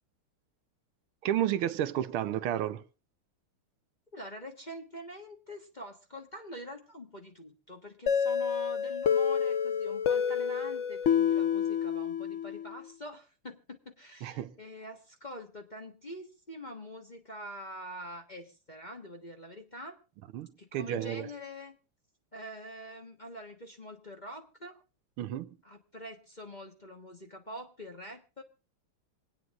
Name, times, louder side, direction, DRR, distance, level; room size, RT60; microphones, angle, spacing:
voice 1, 1.2-2.8 14.2-14.5 20.3-21.3 25.2-25.5, right 11 dB, 80° right, 1.7 m, -31 dB
voice 2, 4.1-20.0 20.6-21.8 22.3-24.7 25.6-28.4, equal, 25° left, 1.2 m, -45 dB
sound 1, 8.1-12.7, left 7 dB, 65° left, 0.7 m, -28 dB
27.0 x 9.4 x 2.5 m
omnidirectional pair, 2.3 m